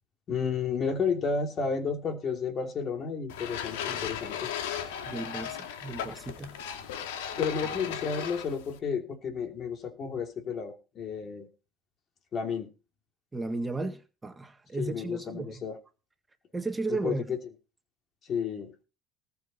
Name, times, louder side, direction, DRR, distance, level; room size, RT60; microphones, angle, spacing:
voice 1, 0.3-4.5 7.4-11.5 12.3-12.7 14.8-15.8 16.9-17.4 18.2-18.8, left 5 dB, 40° left, 2.9 m, -32 dB
sound 1, 3.3-8.8, left 9 dB, 85° left, 2.2 m, -36 dB
voice 2, 5.0-6.6 13.3-15.5 16.5-17.2, right 3 dB, 15° right, 1.8 m, -34 dB
19.0 x 7.2 x 4.3 m
supercardioid pair, 100°, 0 cm